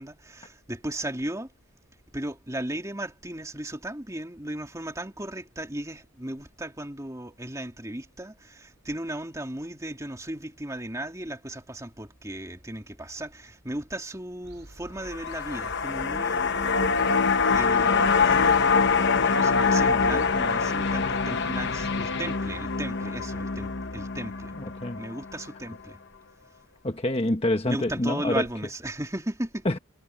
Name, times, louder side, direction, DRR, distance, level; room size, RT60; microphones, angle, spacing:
voice 1, 0.0-1.5 2.1-17.0 17.5-18.9 19.3-24.5 25.0-26.0 27.7-29.7, right 1 dB, 15° right, 2.8 m, -36 dB
sound 1, 14.4-22.2, right 1 dB, 55° right, 5.4 m, -47 dB
sound 2, 15.0-25.4 25.7-25.8, left 5 dB, 50° left, 0.9 m, -24 dB
voice 2, 24.6-25.0 26.8-28.5 29.6-29.8, left 1 dB, 25° left, 1.2 m, -26 dB
head